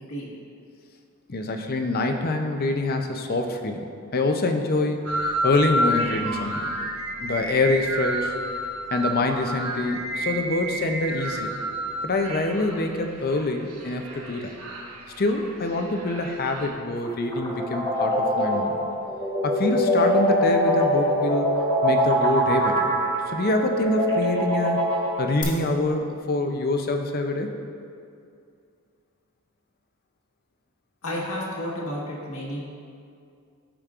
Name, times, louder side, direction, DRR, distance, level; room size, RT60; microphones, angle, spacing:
voice 1, 1.3-3.9 4.1-6.7 7.2-8.4 8.9-11.5 12.0-14.6 15.2-18.8 19.4-22.9 23.3-24.9 25.2-27.5, left 2 dB, 45° left, 5 dB, 0.6 m, -25 dB
sound 1, 5.1-16.7, right 1 dB, 85° right, 1.2 m, -30 dB
sound 2, 16.9-25.4, equal, 20° left, 1.4 m, -23 dB
voice 2, 31.0-32.7, left 1 dB, 70° left, -5 dB, 1.6 m, -31 dB
13.5 x 5.1 x 2.5 m, 2.4 s
head